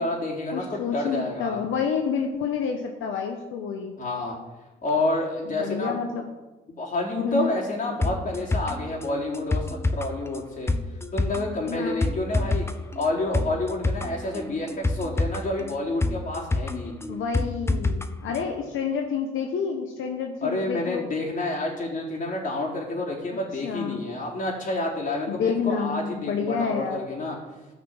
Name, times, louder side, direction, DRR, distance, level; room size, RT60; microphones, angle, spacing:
voice 1, 0.0-1.6 4.0-4.4 4.8-6.0 6.7-10.7 11.1-12.7 13.0-16.9 20.4-27.4, left 2 dB, 40° left, -2 dB, 3.9 m, -29 dB
voice 2, 0.5-3.9 5.6-6.3 7.2-7.6 11.7-12.1 17.1-21.1 23.3-24.0 25.3-27.2, left 6 dB, 80° left, 3 dB, 1.1 m, -29 dB
sound 1, 8.0-18.1 18.3-18.4, left 2 dB, 15° left, 0.8 m, -28 dB
13.5 x 6.0 x 7.3 m, 1.2 s
cardioid pair, 90°, 20 cm